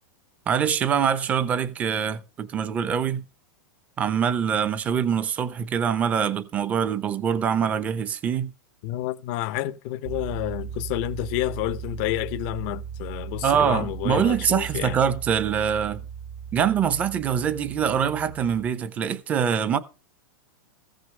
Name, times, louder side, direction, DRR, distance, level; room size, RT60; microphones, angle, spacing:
voice 1, 0.5-3.2 4.0-8.5 13.4-16.0 16.5-19.8, right 8 dB, 15° right, 0.8 m, -24 dB
voice 2, 8.8-15.0, left 15 dB, 30° left, 0.7 m, -29 dB
sound 1, 10.0-18.7, right 8 dB, 55° right, 1.1 m, -37 dB
15.5 x 6.3 x 6.4 m
supercardioid pair, 175°, 11 cm